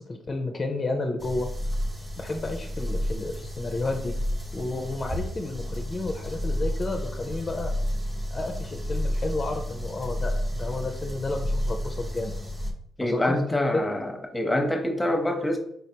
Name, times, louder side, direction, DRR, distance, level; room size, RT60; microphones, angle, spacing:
voice 1, 0.0-1.5 2.2-4.2 4.5-7.7 8.3-12.3 13.0-13.8, left 2 dB, 30° left, 2 dB, 0.5 m, -31 dB
sound 1, 1.2-12.7, equal, 20° right, 0.9 m, -31 dB
voice 2, 13.0-15.6, left 1 dB, 10° left, 3 dB, 0.8 m, -25 dB
4.6 x 3.2 x 2.8 m, 0.71 s
cardioid pair, 90°, 0 cm